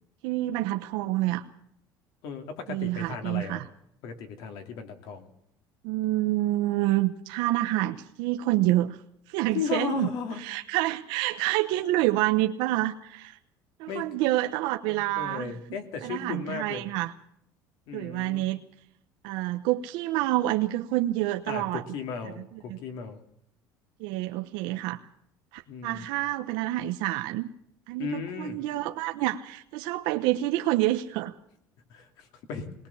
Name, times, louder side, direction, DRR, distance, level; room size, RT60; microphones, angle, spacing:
voice 1, 0.2-1.4 2.7-3.7 5.8-9.0 9.3-10.1 10.4-13.4 13.8-15.5 16.0-17.1 17.9-18.6 19.2-21.8 22.2-22.8 24.0-25.0 25.5-27.5 27.9-31.3, right 16 dB, 80° right, 6 dB, 0.9 m, -28 dB
voice 2, 2.2-3.6 4.0-5.3 9.5-10.4 13.9-14.0 14.9-16.9 17.9-18.4 21.5-23.2 25.7-26.0 28.0-28.6 31.9-32.7, left 6 dB, 60° left, 6 dB, 2.7 m, -35 dB
20.5 x 19.0 x 7.2 m, 0.73 s
cardioid pair, 175°, 8 cm